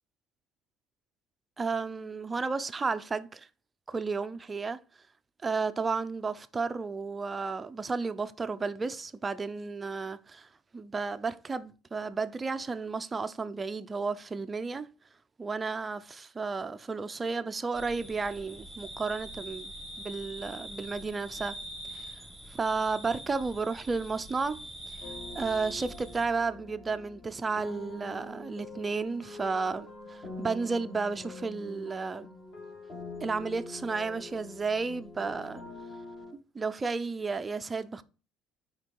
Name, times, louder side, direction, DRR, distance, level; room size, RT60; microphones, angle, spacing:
voice 1, 1.6-3.5 3.9-4.8 5.4-14.9 15.4-19.7 20.0-21.6 21.9-22.2 22.5-32.3 33.2-35.6 36.3-38.0, right 4 dB, 15° right, 0.5 m, -33 dB
sound 1, 17.7-26.2, equal, 10° left, 2.1 m, -44 dB
sound 2, 25.0-36.3, left 2 dB, 30° left, 2.2 m, -45 dB
6.6 x 5.1 x 4.6 m
cardioid pair, 165°, 0 cm